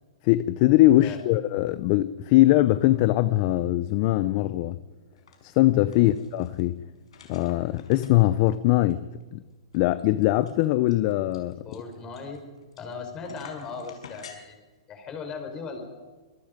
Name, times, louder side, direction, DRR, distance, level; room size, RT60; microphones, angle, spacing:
voice 1, 0.2-4.8 5.4-6.8 7.3-9.4 9.7-11.6, left 16 dB, 35° left, 0.7 m, -21 dB
sound 1, 5.2-5.4 5.6-6.6 7.1-8.5 8.9-9.0 9.2-9.3 9.7-12.9 13.2-14.4, left 6 dB, 85° left, 5.6 m, -48 dB
voice 2, 11.6-12.4 12.8-16.0, left 4 dB, 20° left, 4.7 m, -38 dB
26.5 x 23.0 x 5.3 m
hypercardioid pair, 155°, 3 cm